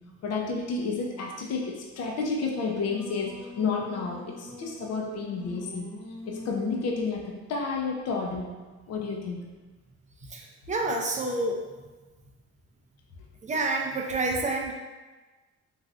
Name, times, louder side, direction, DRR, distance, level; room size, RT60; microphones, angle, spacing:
voice 1, 0.2-5.9 6.3-8.6 8.9-9.4, left 4 dB, 55° left, -1 dB, 0.6 m, -31 dB
Singing, 2.3-7.1, left 1 dB, 20° left, 0.8 m, -43 dB
voice 2, 10.3-11.6 13.4-14.7, right 2 dB, 25° right, 0 dB, 0.4 m, -28 dB
3.2 x 2.4 x 2.4 m, 1.2 s
cardioid pair, 90°, 30 cm